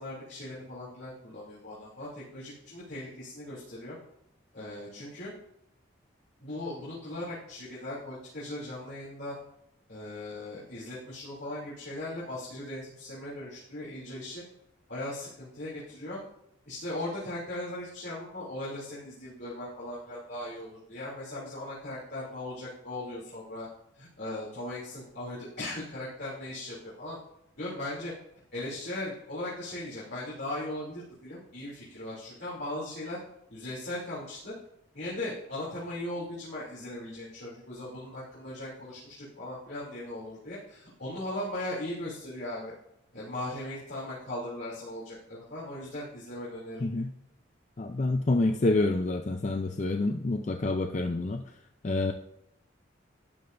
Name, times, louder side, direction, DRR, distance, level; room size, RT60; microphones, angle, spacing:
voice 1, 0.0-4.0 4.5-5.3 6.4-9.3 9.9-14.4 14.9-16.2 16.7-23.7 23.9-27.2 27.6-28.1 28.5-33.2 33.5-34.5 34.9-42.7 43.1-46.9, left 1 dB, 55° left, -9 dB, 3.0 m, -38 dB
voice 2, 47.8-51.4 51.8-52.1, left 2 dB, 35° left, 5 dB, 0.5 m, -27 dB
12.0 x 9.6 x 2.6 m, 0.77 s
head